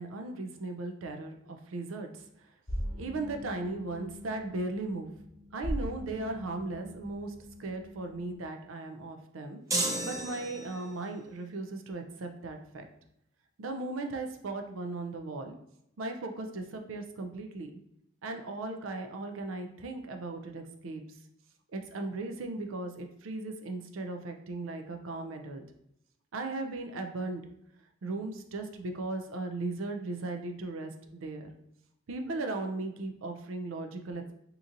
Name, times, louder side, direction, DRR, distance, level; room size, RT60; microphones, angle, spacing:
voice 1, 0.0-2.2 3.0-5.1 5.5-7.3 7.6-12.9 13.6-15.5 16.0-17.8 18.2-21.0 21.7-25.6 26.3-27.4 28.0-31.5 32.1-34.3, right 2 dB, 90° right, 5 dB, 0.5 m, -37 dB
sound 1, 2.7-8.3, equal, 20° left, 1.0 m, -40 dB
sound 2, 9.7-11.0, right 2 dB, 15° right, 0.5 m, -32 dB
2.9 x 2.6 x 3.7 m, 0.78 s
head